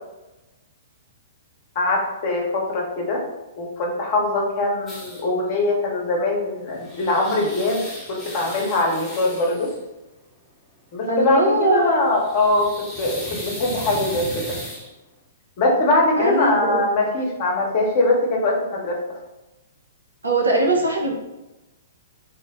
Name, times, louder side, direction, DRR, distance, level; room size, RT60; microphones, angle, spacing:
voice 1, 1.7-3.2 3.6-7.8 8.1-9.7 10.9-11.4 11.7-12.7 13.0-14.4 15.6-19.0, left 2 dB, 40° left, -1 dB, 0.9 m, -22 dB
sound 1, 4.9-5.3 6.5-9.8 12.0-14.9, equal, 10° left, 0.9 m, -36 dB
voice 2, 11.1-12.0 16.2-16.8 20.2-21.1, right 2 dB, 75° right, -2 dB, 0.8 m, -20 dB
3.2 x 2.1 x 3.5 m, 1.0 s
figure-of-eight pair, 110°, 0 cm